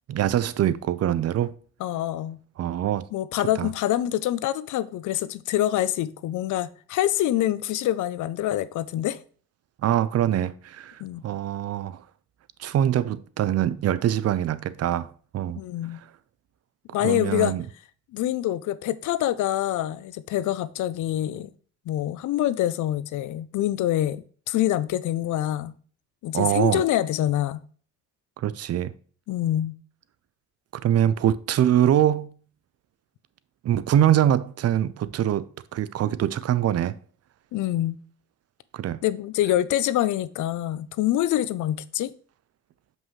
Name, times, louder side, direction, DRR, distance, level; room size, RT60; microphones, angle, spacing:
voice 1, 0.1-1.5 2.6-3.1 3.6-3.7 9.8-12.0 12.6-15.6 17.0-17.6 26.3-26.8 28.4-28.9 30.7-32.3 33.6-37.0 38.7-39.0, right 11 dB, 55° right, 0.5 m, -24 dB
voice 2, 1.8-2.4 3.1-9.2 11.0-11.2 15.5-16.0 16.9-17.6 18.1-21.5 21.9-25.7 26.2-27.6 29.3-29.8 37.5-38.0 39.0-42.1, left 13 dB, 80° left, 0.6 m, -25 dB
7.2 x 5.4 x 3.1 m
cardioid pair, 90°, 30 cm